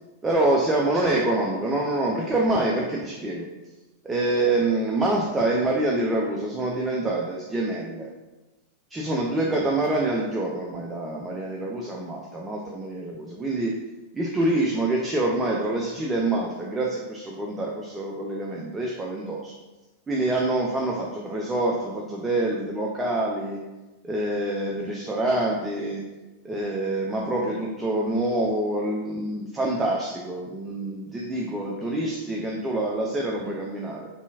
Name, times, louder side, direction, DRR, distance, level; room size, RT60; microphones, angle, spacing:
voice 1, 0.2-3.5 4.0-8.1 8.9-13.7 14.1-19.5 20.1-23.6 24.0-26.0 26.4-34.1, right 2 dB, 15° right, -2 dB, 0.3 m, -26 dB
2.7 x 2.6 x 2.3 m, 1.1 s
figure-of-eight pair, 90°, 0 cm